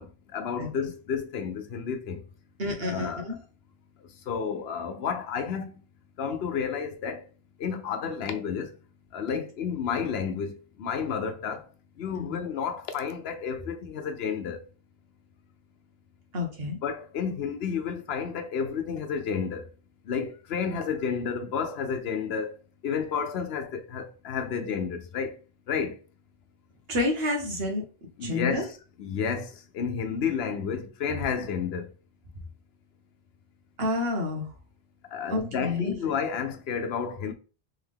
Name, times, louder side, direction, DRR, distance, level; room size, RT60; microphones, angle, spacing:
voice 1, 0.0-2.2 2.8-3.4 4.3-5.7 6.2-7.3 7.6-8.8 9.1-11.7 12.0-14.7 16.6-19.7 20.0-25.4 25.7-26.0 28.2-28.7 29.0-31.9 35.1-37.3, left 6 dB, 80° left, 0.9 m, -31 dB
voice 2, 2.6-3.3 9.3-9.4 12.2-12.4 16.3-16.8 26.9-27.8 28.2-28.6 33.8-34.5 35.3-35.9, left 2 dB, 75° right, 1.4 m, -29 dB
3.5 x 3.5 x 3.6 m
omnidirectional pair, 1.0 m